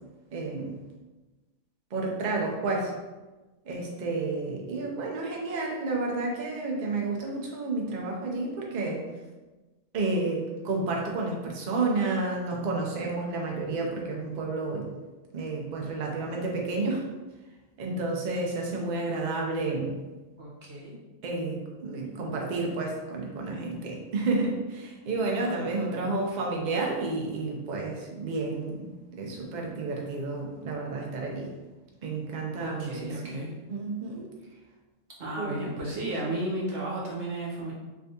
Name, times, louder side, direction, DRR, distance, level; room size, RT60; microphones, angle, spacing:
voice 1, 0.3-0.8 1.9-2.9 3.6-9.0 9.9-14.9 15.3-17.0 17.8-20.0 21.2-28.9 29.1-31.5 32.0-33.4 33.7-34.3 35.4-35.6, right 3 dB, 85° right, -1 dB, 0.4 m, -31 dB
voice 2, 20.4-21.0 21.9-22.4 25.4-26.1 32.5-33.5 34.5-34.6 35.2-37.7, right 1 dB, 50° right, -5 dB, 1.2 m, -34 dB
3.4 x 3.3 x 2.7 m, 1.2 s
omnidirectional pair, 1.6 m